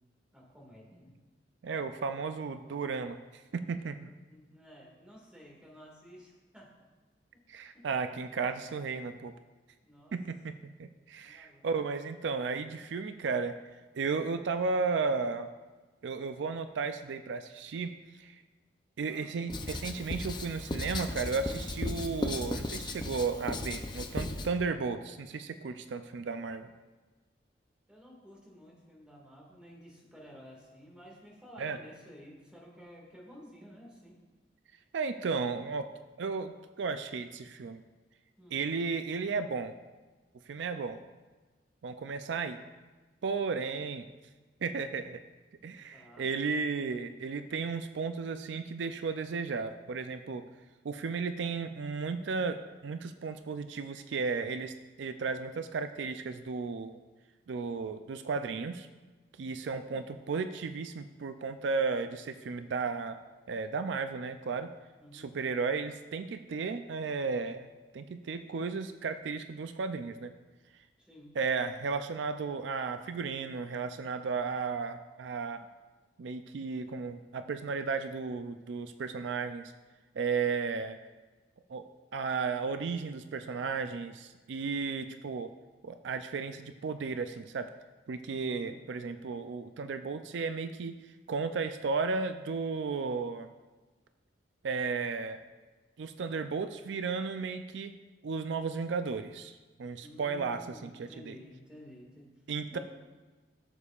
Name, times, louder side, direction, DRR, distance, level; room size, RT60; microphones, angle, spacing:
voice 1, 0.3-1.1 4.3-6.7 9.8-10.1 11.2-11.7 19.1-19.5 27.9-34.2 38.4-38.6 45.8-46.3 59.6-60.0 65.0-65.3 71.0-71.3 88.5-88.8 100.0-102.3 102.7-102.8, equal, 5° right, -4 dB, 1.9 m, -53 dB
voice 2, 1.6-4.1 7.5-9.3 10.1-10.5 10.8-13.6 14.0-15.5 16.0-18.4 19.0-26.7 31.6-31.8 34.9-35.9 36.2-37.8 38.5-39.7 40.5-41.0 41.8-42.6 43.2-44.1 44.6-45.2 45.6-50.4 50.8-57.0 57.5-58.9 59.4-63.2 63.5-64.7 65.1-67.7 67.9-70.3 71.3-75.7 76.2-79.7 80.2-81.0 81.7-81.8 82.1-85.5 85.8-87.7 88.1-91.0 91.3-93.5 94.6-95.4 96.0-98.0 98.2-101.4 102.5-102.8, right 4 dB, 75° right, 9 dB, 0.4 m, -34 dB
Writing, 19.5-24.5, left 2 dB, 25° left, 0.5 m, -36 dB
15.0 x 6.9 x 2.4 m, 1.3 s
head